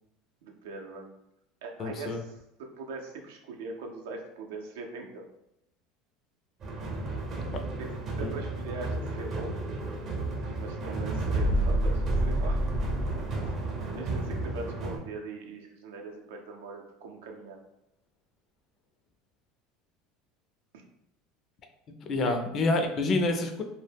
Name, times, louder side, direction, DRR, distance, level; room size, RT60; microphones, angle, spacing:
voice 1, 0.4-1.1 1.6-5.2 7.8-7.9 8.2-9.6 10.6-12.6 13.9-17.6 20.7-20.8 22.2-22.3, right 3 dB, 90° right, 2 dB, 0.5 m, -41 dB
voice 2, 1.8-2.2 7.5-7.6 8.2-8.3 22.0-23.6, left 2 dB, 40° left, 5 dB, 0.4 m, -28 dB
sound 1, 6.6-15.0, right 1 dB, 40° right, 0.5 m, -30 dB
2.2 x 2.0 x 3.3 m, 0.81 s
supercardioid pair, 120°, 0 cm